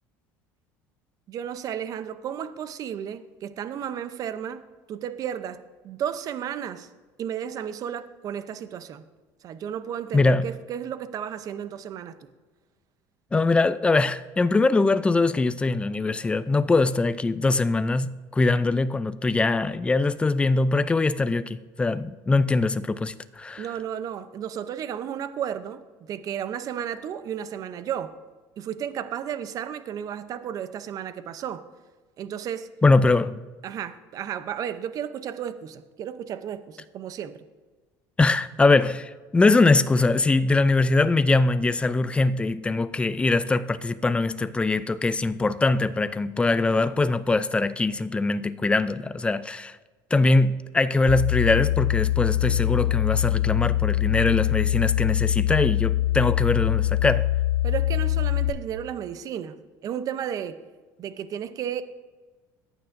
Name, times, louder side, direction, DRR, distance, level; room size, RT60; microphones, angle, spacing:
voice 1, 1.3-4.6 4.9-6.9 7.2-9.0 9.4-12.3 23.6-25.8 26.1-28.2 28.6-31.6 32.2-32.7 33.1-33.2 33.6-37.4 57.6-60.6 61.0-61.8, right 9 dB, 45° right, 0.6 m, -33 dB
voice 2, 10.1-10.4 13.3-23.6 32.8-33.3 38.2-49.8 50.1-57.3, left 3 dB, 15° left, 0.4 m, -22 dB
sound 1, 51.1-58.5, left 14 dB, 70° left, 0.6 m, -23 dB
17.5 x 9.1 x 2.6 m
cardioid pair, 120°, 8 cm